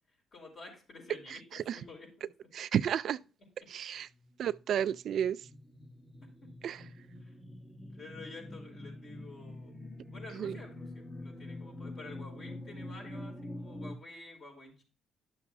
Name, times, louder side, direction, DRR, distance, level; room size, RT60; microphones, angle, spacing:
voice 1, 0.3-2.3 7.2-7.3 7.9-9.8 10.1-14.8, left 3 dB, 50° left, 4.9 m, -50 dB
voice 2, 2.5-3.2 3.7-4.1 4.4-5.5 6.6-6.8 10.3-10.6, right 9 dB, 65° right, 0.3 m, -32 dB
sound 1, 4.2-13.9, left 1 dB, 25° left, 1.3 m, -46 dB
12.0 x 6.8 x 2.2 m
cardioid pair, 90°, 0 cm